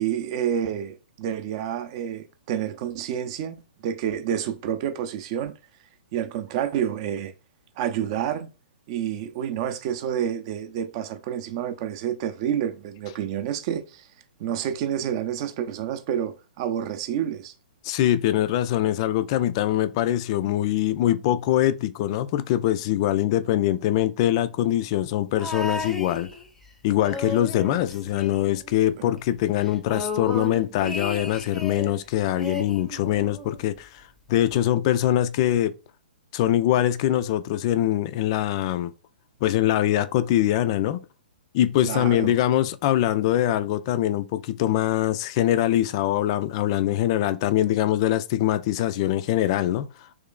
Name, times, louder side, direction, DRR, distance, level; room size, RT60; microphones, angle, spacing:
voice 1, 0.0-5.6 6.1-7.3 7.8-8.5 8.9-14.1 14.4-17.5 29.0-29.2 41.8-42.3, right 9 dB, 35° right, 0.6 m, -29 dB
voice 2, 17.8-26.3 26.8-35.7 36.3-38.9 39.4-41.0 41.5-50.1, left 12 dB, 35° left, 0.3 m, -23 dB
sound 1, 25.4-26.7 27.0-28.9 29.2-29.3 29.6-32.0 32.4-33.6 34.5-34.6, left 2 dB, 5° left, 0.7 m, -34 dB
3.2 x 3.0 x 3.7 m
figure-of-eight pair, 120°, 5 cm